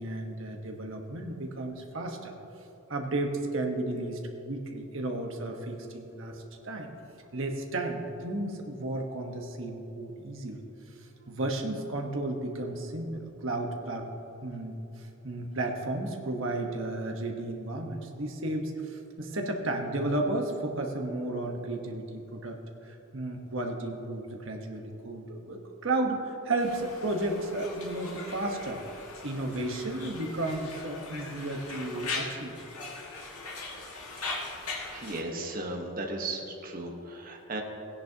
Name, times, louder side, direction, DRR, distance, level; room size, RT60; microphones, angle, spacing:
voice 1, 0.0-2.3 2.9-6.9 7.3-10.6 11.0-14.1 14.4-22.6 22.8-28.8 29.2-32.5, right 2 dB, 60° right, 2 dB, 1.2 m, -33 dB
Conversation, 26.6-35.2, left 3 dB, 85° left, 1.8 m, -40 dB
voice 2, 34.9-37.6, right 2 dB, 40° right, 1 dB, 1.2 m, -36 dB
17.0 x 10.0 x 2.9 m, 3.0 s
head